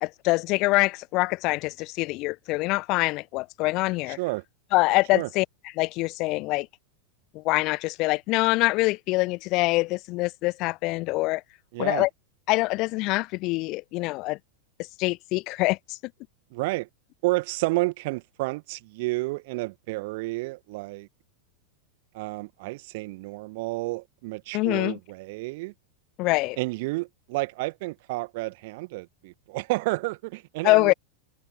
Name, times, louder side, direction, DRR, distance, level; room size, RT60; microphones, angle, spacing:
voice 1, 0.0-4.2 4.7-5.4 5.8-6.7 7.3-11.4 11.8-12.1 12.5-14.4 15.0-16.0 24.5-25.0 26.2-26.6 30.6-30.9, left 22 dB, 40° left, 1.0 m, -24 dB
voice 2, 4.1-4.4 5.1-5.3 11.7-12.1 16.5-16.9 17.2-21.1 22.1-25.7 26.6-30.9, right 23 dB, 50° right, 1.8 m, -30 dB
figure-of-eight pair, 90°, 0 cm